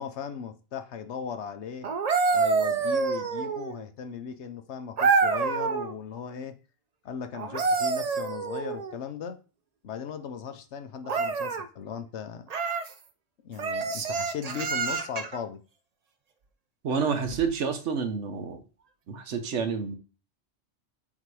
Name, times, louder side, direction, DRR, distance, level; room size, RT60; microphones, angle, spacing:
voice 1, 0.0-1.9 2.3-6.6 7.0-9.4 9.8-12.4 13.4-15.6, left 7 dB, 75° left, 1.0 m, -37 dB
sound 1, 1.8-3.8 5.0-5.9 7.3-9.0 11.1-11.7 12.5-12.9 13.6-15.4 17.3-17.5, right 4 dB, 45° right, 0.5 m, -27 dB
voice 2, 16.8-18.6 19.1-20.0, right 5 dB, 85° right, 1.2 m, -29 dB
7.4 x 2.8 x 4.7 m
omnidirectional pair, 1.2 m